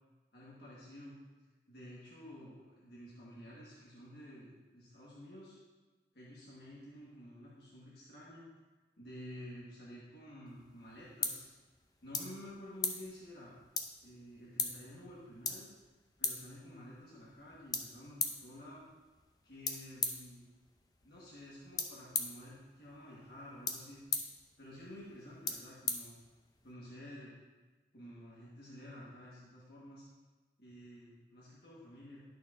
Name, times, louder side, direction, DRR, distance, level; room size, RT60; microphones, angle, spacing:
voice 1, 0.3-1.2 1.7-5.6 6.1-8.5 9.0-11.5 12.0-13.5 14.0-15.7 16.2-18.8 19.4-20.5 21.0-24.0 24.6-26.2 26.6-27.3 27.9-30.0 30.6-32.2, equal, 60° left, -7 dB, 1.6 m, -51 dB
sound 1, 10.5-26.7, left 4 dB, 20° left, 0.6 m, -42 dB
11.5 x 6.4 x 2.7 m, 1.3 s
head